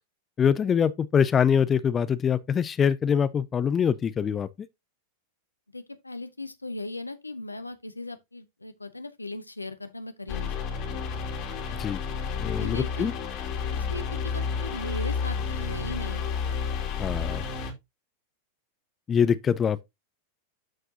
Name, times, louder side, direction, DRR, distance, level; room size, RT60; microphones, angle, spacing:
voice 1, 0.4-4.5 11.8-12.0 12.4-13.1 17.0-17.4 19.1-19.8, left 7 dB, 20° left, 0.5 m, -24 dB
voice 2, 5.7-10.5 12.4-13.1 13.7-16.3, left 2 dB, 85° left, 0.8 m, -38 dB
sound 1, 10.3-17.7, left 6 dB, 40° left, 2.5 m, -31 dB
12.5 x 4.5 x 2.8 m
figure-of-eight pair, 90°, 0 cm